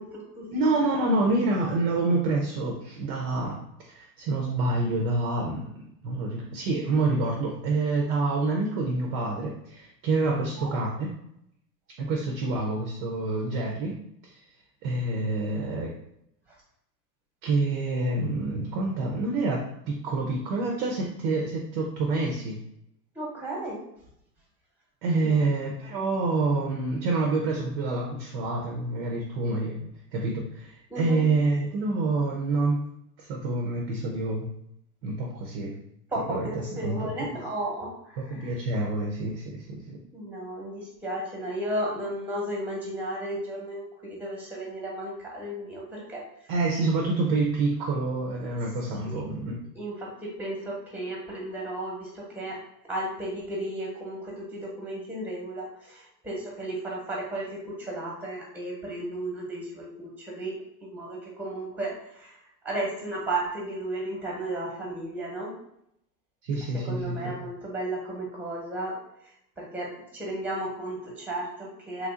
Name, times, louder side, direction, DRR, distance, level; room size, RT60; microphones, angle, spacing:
voice 1, 0.0-0.5 0.9-1.0 10.6-10.8 23.1-23.8 25.2-25.4 30.9-31.2 36.1-38.5 40.1-46.2 49.0-49.2 49.7-60.5 60.8-62.4 62.6-65.5 66.8-68.9 69.6-72.1, right 1 dB, 5° right, -3 dB, 0.9 m, -34 dB
voice 2, 0.5-3.6 3.8-11.1 12.0-14.0 14.3-14.4 14.8-15.9 17.4-22.6 25.0-32.8 33.2-34.5 35.0-35.7 36.3-36.5 36.8-37.4 38.2-40.0 46.5-49.6 66.4-67.2, right 3 dB, 40° right, 0 dB, 0.4 m, -27 dB
3.1 x 2.6 x 2.4 m, 0.75 s
supercardioid pair, 125°, 49 cm